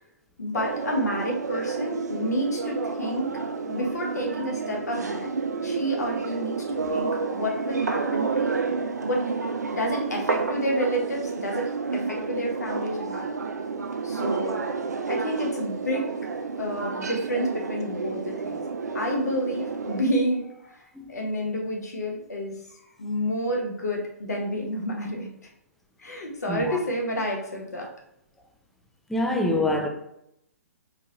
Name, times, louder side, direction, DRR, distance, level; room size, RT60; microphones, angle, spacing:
voice 1, 0.4-3.3 3.7-5.3 5.6-8.6 9.0-9.3 9.7-13.2 14.0-14.6 15.1-16.1 16.6-18.6 18.9-20.8 21.1-25.5 26.0-27.9, equal, 80° left, 1.0 m, -29 dB
sound 1, 0.5-20.0, right 4 dB, 90° right, 0.4 m, -30 dB
voice 2, 26.5-26.8 29.1-29.9, left 1 dB, ahead, 0.4 m, -25 dB
3.8 x 2.4 x 2.8 m
hypercardioid pair, 130°, 9 cm